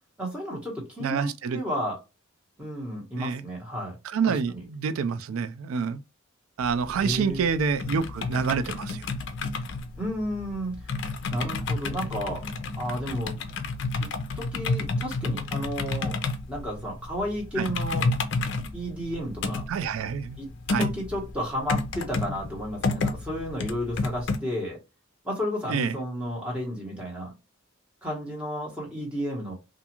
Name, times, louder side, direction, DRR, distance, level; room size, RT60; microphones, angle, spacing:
voice 1, 0.2-2.0 2.6-4.0 4.3-4.6 7.0-7.5 10.0-10.9 11.3-12.5 12.8-13.4 14.0-16.2 16.5-18.1 18.7-19.6 20.4-20.5 20.8-24.8 25.2-27.3 28.0-29.5, equal, 5° right, 1.0 m, -32 dB
voice 2, 1.0-1.6 3.2-3.4 4.0-6.0 6.6-9.1 17.6-17.7 19.7-20.4 20.7-20.9 25.7-25.9, right 6 dB, 85° right, 0.3 m, -27 dB
sound 1, 6.6-24.4, left 3 dB, 55° left, 0.4 m, -31 dB
2.5 x 2.3 x 2.9 m
head